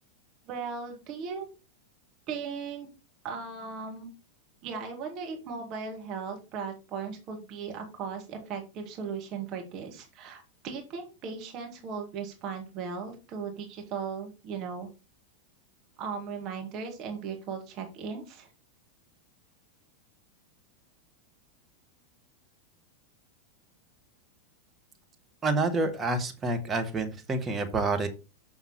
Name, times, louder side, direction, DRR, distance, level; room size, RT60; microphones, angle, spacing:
voice 1, 0.5-1.5 2.3-2.9 3.2-4.1 4.6-14.9 16.0-18.5, right 5 dB, 35° right, 2 dB, 1.9 m, -37 dB
voice 2, 25.4-28.1, right 2 dB, 20° right, 6 dB, 1.6 m, -28 dB
7.1 x 5.7 x 4.4 m, 0.30 s
figure-of-eight pair, 90°, 0 cm